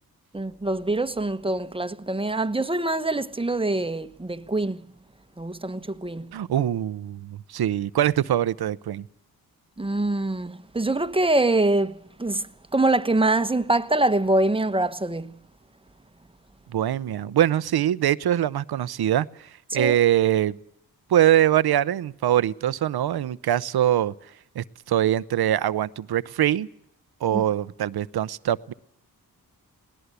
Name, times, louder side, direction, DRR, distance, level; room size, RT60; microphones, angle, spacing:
voice 1, 0.3-4.9 5.4-6.3 9.8-15.4 19.7-20.0 27.3-27.4, right 2 dB, 15° right, 1.2 m, -24 dB
voice 2, 6.3-9.1 16.7-20.6 21.1-24.1 24.5-26.7 27.2-28.7, right 11 dB, 85° right, 0.8 m, -23 dB
20.5 x 18.5 x 8.1 m
cardioid pair, 55°, 37 cm